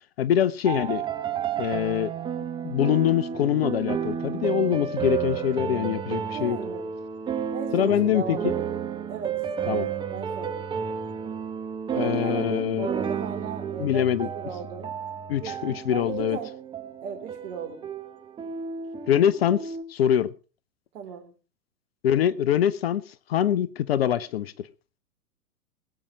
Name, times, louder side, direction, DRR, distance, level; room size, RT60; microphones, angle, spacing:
voice 1, 0.2-1.0 1.6-2.1 2.6-6.6 7.7-8.5 9.7-9.9 11.9-12.9 13.8-14.3 15.3-16.4 19.1-20.3 22.0-24.5, left 10 dB, 40° left, 0.7 m, -24 dB
sound 1, 0.6-19.8, right 7 dB, 10° right, 1.0 m, -32 dB
voice 2, 6.3-7.0 7.5-8.8 9.1-10.7 11.9-14.9 15.4-16.5 17.0-17.8 20.9-21.3, right 7 dB, 50° right, 3.6 m, -37 dB
20.0 x 8.9 x 5.0 m
figure-of-eight pair, 120°, 49 cm